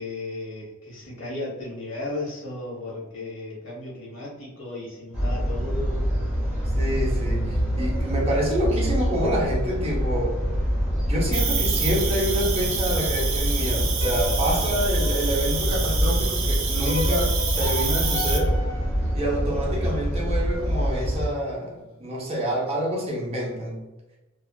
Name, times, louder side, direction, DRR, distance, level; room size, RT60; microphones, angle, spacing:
voice 1, 0.0-6.1, left 2 dB, 70° left, -4 dB, 1.0 m, -35 dB
sound 1, 5.1-21.3, equal, 5° right, 1.0 m, -25 dB
voice 2, 6.8-10.4 11.1-18.6 19.1-23.9, equal, 30° right, -3 dB, 0.7 m, -27 dB
Cricket, 11.3-18.4, right 6 dB, 70° right, 0.5 m, -29 dB
sound 2, 14.0-16.1 16.8-20.0, left 2 dB, 35° left, 0.6 m, -35 dB
2.6 x 2.3 x 2.2 m, 1.0 s
head